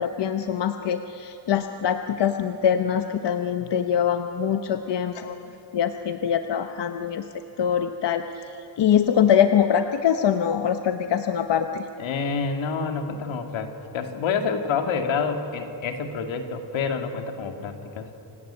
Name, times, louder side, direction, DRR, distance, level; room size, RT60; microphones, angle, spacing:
voice 1, 0.0-7.2 7.6-8.4 8.8-11.9, left 8 dB, 65° left, 7 dB, 1.0 m, -23 dB
voice 2, 12.0-18.1, left 5 dB, 85° left, 5 dB, 2.5 m, -28 dB
27.5 x 18.5 x 8.9 m, 2.8 s
wide cardioid pair, 145°, 45 cm